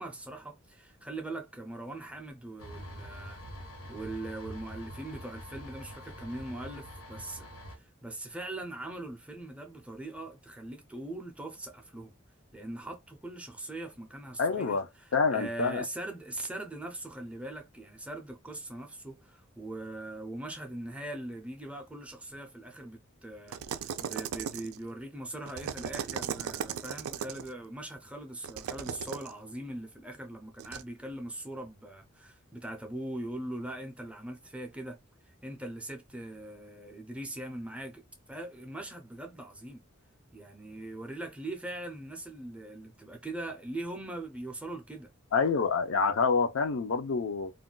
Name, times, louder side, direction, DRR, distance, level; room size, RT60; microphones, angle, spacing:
voice 1, 0.0-3.4 3.9-7.5 7.8-12.1 12.5-35.0 35.3-39.8 40.3-45.1, right 1 dB, 5° right, 0.4 m, -41 dB
sound 1, 2.6-7.8, equal, 80° left, 1.1 m, -45 dB
voice 2, 14.4-14.9 15.1-15.8 45.3-47.5, left 5 dB, 65° left, 0.5 m, -27 dB
sound 2, 23.5-24.9 25.5-27.5 28.4-29.3 30.6-30.8, right 8 dB, 90° right, 0.3 m, -37 dB
2.4 x 2.2 x 3.7 m
head